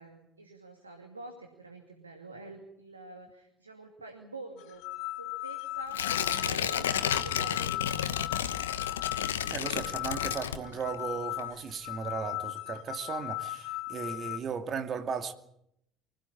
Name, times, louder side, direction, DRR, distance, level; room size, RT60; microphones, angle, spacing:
voice 1, 0.0-8.2, right 3 dB, 85° right, 2.4 m, -47 dB
sound 1, 4.6-14.4, left 18 dB, 60° left, 2.7 m, -38 dB
Tearing, 5.9-11.0 11.4-11.5, left 9 dB, 75° left, 1.1 m, -31 dB
voice 2, 9.5-15.3, right 6 dB, 40° right, 2.5 m, -36 dB
24.5 x 16.5 x 9.9 m
figure-of-eight pair, 60°, 0 cm